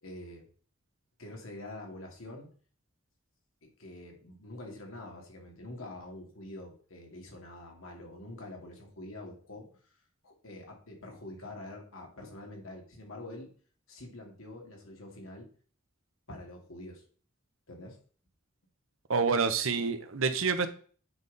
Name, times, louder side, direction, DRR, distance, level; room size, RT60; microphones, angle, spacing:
voice 1, 0.0-0.5 1.2-2.5 3.6-9.8 10.2-13.5 13.9-15.5 16.3-17.0 17.7-18.0, left 1 dB, 85° left, 2.4 m, -46 dB
voice 2, 19.1-20.7, right 5 dB, 80° right, 0.9 m, -27 dB
8.8 x 5.5 x 4.0 m
head